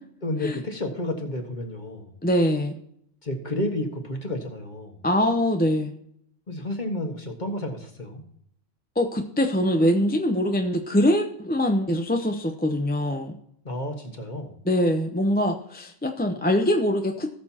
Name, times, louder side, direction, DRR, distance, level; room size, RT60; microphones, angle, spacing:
voice 1, 0.2-2.2 3.2-5.0 6.5-8.2 13.6-14.6, left 1 dB, 40° left, 3 dB, 1.7 m, -31 dB
voice 2, 2.2-2.7 5.0-5.9 9.0-13.3 14.7-17.3, equal, 10° left, 4 dB, 0.6 m, -23 dB
19.0 x 6.8 x 2.9 m, 0.70 s
omnidirectional pair, 1.2 m